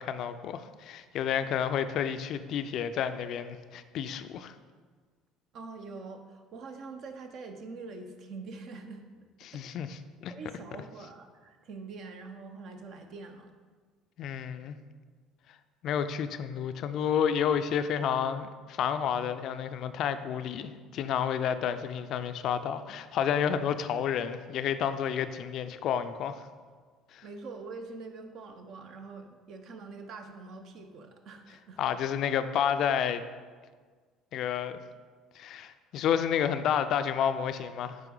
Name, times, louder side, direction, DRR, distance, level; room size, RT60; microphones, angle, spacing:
voice 1, 0.0-4.5 9.4-10.3 14.2-14.8 15.8-26.5 27.1-27.2 31.8-33.2 34.3-34.8 35.4-38.0, left 8 dB, 55° left, 10 dB, 0.3 m, -30 dB
voice 2, 5.5-9.0 9.5-9.8 10.3-13.5 27.2-31.8, right 4 dB, 55° right, 6 dB, 0.7 m, -44 dB
9.0 x 3.1 x 3.8 m, 1.5 s
hypercardioid pair, 60°, 0 cm